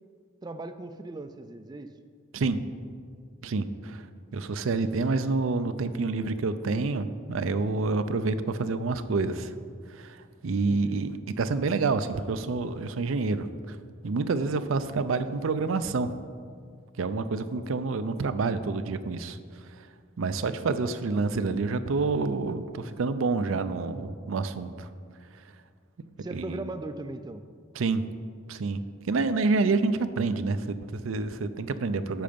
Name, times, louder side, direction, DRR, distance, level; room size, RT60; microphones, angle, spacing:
voice 1, 0.4-1.9 10.7-11.0 26.2-27.4, right 2 dB, 20° right, 9 dB, 0.3 m, -38 dB
voice 2, 3.4-4.1 4.3-9.5 9.9-13.8 14.0-16.1 17.0-19.4 20.2-24.9 26.3-26.6 27.8-28.0 28.5-28.8 29.1-32.2, right 3 dB, 85° right, 11 dB, 0.5 m, -28 dB
10.5 x 6.8 x 5.2 m, 2.1 s
head